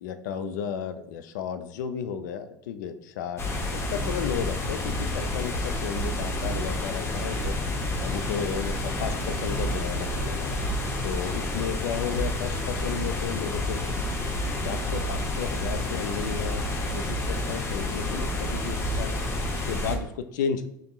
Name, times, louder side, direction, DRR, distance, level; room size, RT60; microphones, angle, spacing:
voice 1, 0.0-3.4 3.7-7.5 8.0-13.8 14.6-16.6 16.9-19.1 19.7-20.7, left 7 dB, 60° left, 10 dB, 0.5 m, -33 dB
sound 1, 3.4-20.0, left 1 dB, 25° left, 0.8 m, -29 dB
sound 2, 7.0-12.8, left 1 dB, 5° right, 0.9 m, -43 dB
5.2 x 3.8 x 2.4 m, 0.79 s
figure-of-eight pair, 70°, 11 cm